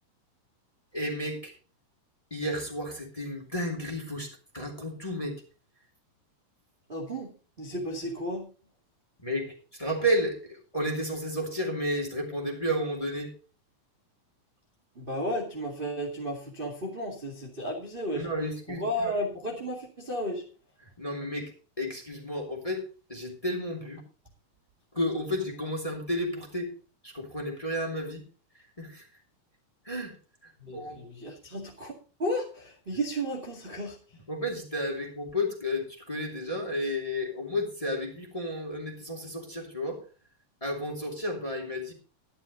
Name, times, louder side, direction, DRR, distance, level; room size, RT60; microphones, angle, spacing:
voice 1, 0.9-1.5 2.3-5.4 9.2-13.3 18.1-19.2 21.0-22.8 23.1-24.0 24.9-26.7 27.0-28.2 28.8-29.1 29.8-30.1 30.7-31.0 34.3-40.0 40.6-41.9, equal, 10° left, 0 dB, 2.5 m, -32 dB
voice 2, 6.9-7.3 7.6-8.5 15.0-18.3 18.8-20.4 30.6-31.9 32.2-34.0, equal, 20° right, -2 dB, 1.9 m, -33 dB
12.0 x 11.5 x 4.0 m, 0.37 s
omnidirectional pair, 3.7 m